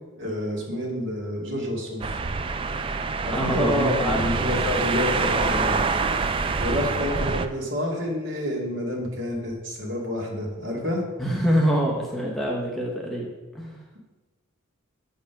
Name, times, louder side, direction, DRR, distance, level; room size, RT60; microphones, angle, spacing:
voice 1, 0.1-2.0 3.2-5.8 6.6-11.0, left 1 dB, 60° right, -2 dB, 2.2 m, -29 dB
sound 1, 2.0-7.5, right 4 dB, 25° right, 0.3 m, -26 dB
voice 2, 3.3-4.6 11.2-13.3 13.5-13.8, equal, ahead, -3 dB, 0.9 m, -25 dB
7.1 x 5.5 x 5.7 m, 1.2 s
head